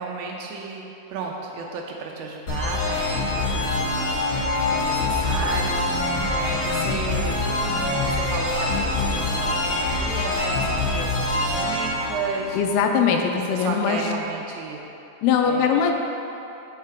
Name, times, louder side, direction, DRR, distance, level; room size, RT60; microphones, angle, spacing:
voice 1, 0.0-7.5 7.8-12.6 13.1-14.9 15.4-15.9, right 4 dB, 85° right, -1 dB, 2.7 m, -34 dB
sound 1, 2.5-13.1, left 2 dB, 60° left, 1.3 m, -24 dB
voice 2, 12.5-14.0 15.2-15.9, left 7 dB, 80° left, 3 dB, 2.4 m, -21 dB
8.0 x 6.6 x 3.4 m, 3.0 s
omnidirectional pair, 4.7 m